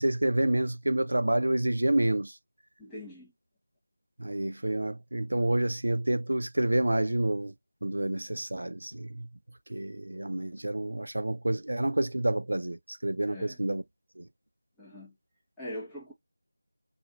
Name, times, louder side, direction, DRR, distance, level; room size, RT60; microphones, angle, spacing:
voice 1, 0.0-2.4 4.2-7.5 7.8-9.3 9.7-13.8 14.2-14.3, right 1 dB, 70° right, 0.4 m, -28 dB
voice 2, 2.8-3.3 13.3-13.6 14.8-15.1 15.6-16.1, left 1 dB, 5° left, 0.6 m, -42 dB
2.4 x 2.1 x 2.8 m
figure-of-eight pair, 165°, 0 cm